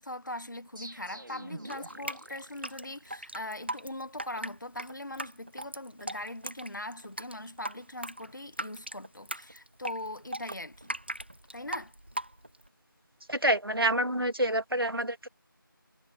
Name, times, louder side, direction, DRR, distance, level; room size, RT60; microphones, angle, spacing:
voice 1, 0.0-10.9 11.5-11.9, left 1 dB, 60° left, 1.7 m, -41 dB
sound 1, 0.8-3.5, right 1 dB, 65° right, 4.1 m, -46 dB
Drip, 1.7-12.7, right 1 dB, 30° right, 0.7 m, -39 dB
voice 2, 13.3-15.3, right 1 dB, 80° right, 2.6 m, -27 dB
figure-of-eight pair, 170°, 12 cm